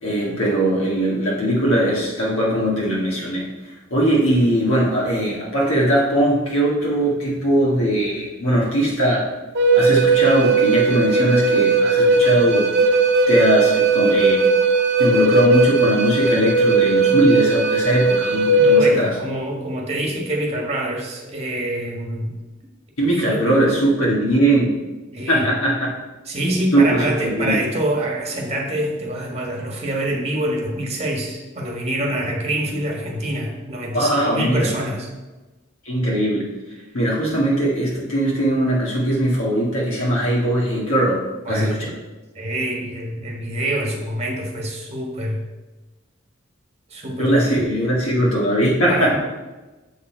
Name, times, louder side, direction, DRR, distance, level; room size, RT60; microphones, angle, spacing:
voice 1, 0.0-3.5 3.9-9.4 9.7-12.7 13.3-14.4 15.0-19.1 23.0-24.7 25.3-25.9 26.7-27.6 33.9-34.8 35.9-36.5 36.9-41.9 47.2-49.2, right 1 dB, 85° left, -4 dB, 1.9 m, -20 dB
Wind instrument woodwind instrument, 9.6-18.8, right 3 dB, 55° right, 0.8 m, -17 dB
voice 2, 18.5-22.3 23.0-23.5 25.1-25.5 26.3-35.1 41.4-41.7 42.3-45.4 46.9-47.6 48.9-49.2, right 1 dB, 30° right, 0 dB, 1.8 m, -26 dB
7.5 x 7.1 x 4.5 m, 1.2 s
head